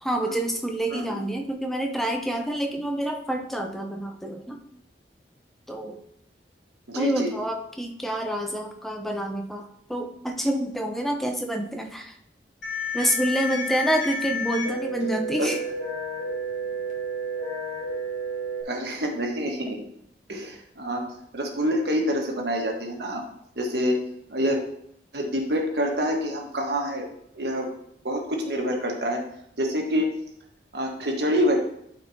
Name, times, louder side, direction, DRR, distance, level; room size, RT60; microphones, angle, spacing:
voice 1, 0.0-4.6 5.7-6.0 6.9-9.6 9.9-12.1 12.9-15.6, right 1 dB, ahead, 3 dB, 0.7 m, -27 dB
voice 2, 6.9-7.3 15.4-15.6 18.7-19.8 20.3-21.1 21.3-23.2 23.6-24.0 24.3-24.6 25.1-27.1 27.3-27.7 28.0-29.2 29.6-30.1 30.7-31.6, equal, 65° right, 1 dB, 1.4 m, -26 dB
sound 1, 12.6-18.6, equal, 45° left, 1.6 m, -31 dB
11.5 x 4.4 x 2.7 m, 0.72 s
head